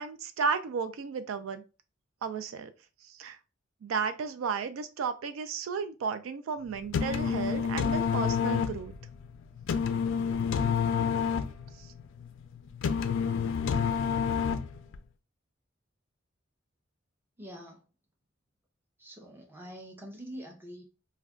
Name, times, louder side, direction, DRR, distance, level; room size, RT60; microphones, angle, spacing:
voice 1, 0.0-1.6 2.2-2.7 3.1-3.4 3.8-8.9 11.8-11.9, right 5 dB, 85° right, 0.3 m, -33 dB
sound 1, 6.7-15.0, left 6 dB, 70° left, 0.3 m, -29 dB
voice 2, 17.4-17.8 19.0-20.8, equal, 10° right, 0.7 m, -45 dB
2.4 x 2.2 x 3.5 m
head